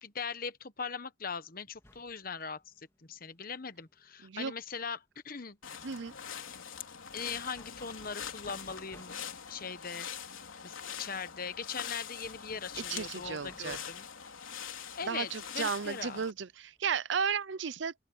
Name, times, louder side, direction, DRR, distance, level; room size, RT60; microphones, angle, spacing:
voice 1, 0.0-5.6 7.1-9.2 9.5-14.1 15.0-16.2, left 5 dB, 45° left, 1.1 m, -40 dB
sound 1, 1.7-5.2 5.4-5.5 5.8-16.8, left 1 dB, 15° left, 2.4 m, -60 dB
sound 2, 5.6-16.3, left 8 dB, 85° left, 3.4 m, -43 dB
voice 2, 12.9-13.8 15.0-17.9, right 6 dB, 60° right, 0.6 m, -34 dB
open air
head